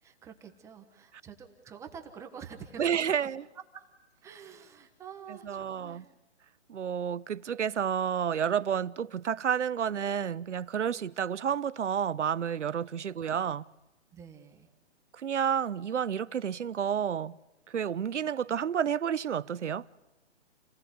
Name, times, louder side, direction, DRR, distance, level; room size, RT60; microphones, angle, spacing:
voice 1, 0.0-2.8 3.7-6.1 14.1-14.7, right 7 dB, 10° right, 1.3 m, -48 dB
voice 2, 2.8-3.4 5.4-6.0 6.7-13.6 15.1-17.4 17.7-19.9, right 8 dB, 80° right, 0.9 m, -30 dB
29.0 x 20.0 x 9.6 m
hypercardioid pair, 160°, 35 cm